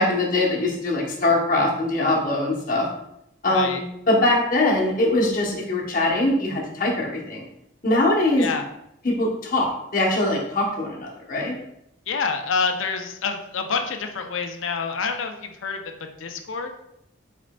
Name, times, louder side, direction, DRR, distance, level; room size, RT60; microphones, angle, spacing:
voice 1, 0.0-2.9 3.4-3.8 4.1-7.4 7.8-8.5 9.0-11.6, left 2 dB, 45° left, -2 dB, 1.0 m, -22 dB
voice 2, 3.5-3.8 8.4-8.7 12.1-16.7, left 5 dB, 85° left, 6 dB, 0.6 m, -27 dB
4.9 x 4.5 x 2.3 m, 0.80 s
head